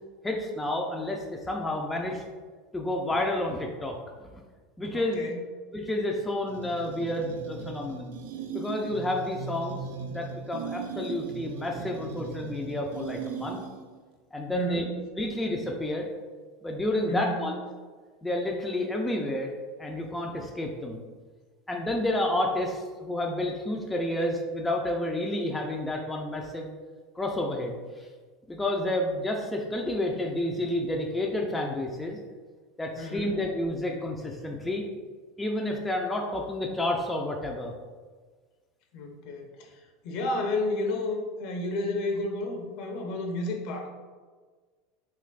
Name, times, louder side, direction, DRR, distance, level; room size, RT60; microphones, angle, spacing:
voice 1, 0.2-2.2 2.7-4.3 4.8-5.3 5.7-8.1 8.5-9.8 10.1-13.6 14.3-14.9 15.2-16.1 16.6-17.6 18.2-19.5 19.8-21.0 21.7-26.7 27.2-27.7 28.5-32.2 32.8-34.8 35.4-37.7, left 1 dB, 10° left, 0 dB, 0.3 m, -30 dB
voice 2, 4.9-5.4 14.5-14.9 17.1-17.5 33.0-33.4 38.9-39.7 40.0-43.9, left 2 dB, 60° left, 2 dB, 0.6 m, -31 dB
sound 1, 6.5-14.0, right 6 dB, 85° right, 0.3 m, -38 dB
3.2 x 3.0 x 2.4 m, 1.4 s
supercardioid pair, 130°, 0 cm